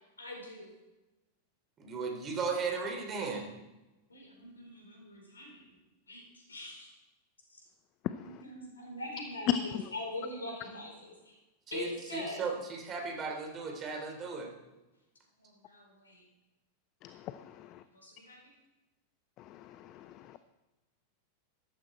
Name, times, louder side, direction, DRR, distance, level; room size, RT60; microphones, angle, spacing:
voice 1, 0.2-0.7 4.1-5.8 6.1-6.9 7.5-7.6 8.4-11.4 11.7-12.4 15.4-16.2 17.9-18.4, left 1 dB, 75° left, 1 dB, 4.7 m, -43 dB
voice 2, 1.8-3.5 11.7-14.5, right 4 dB, 25° right, 3 dB, 3.4 m, -36 dB
voice 3, 17.0-17.8 19.4-20.4, left 11 dB, 35° left, 12 dB, 0.6 m, -35 dB
14.0 x 12.5 x 4.5 m, 1.0 s
figure-of-eight pair, 90°, 0 cm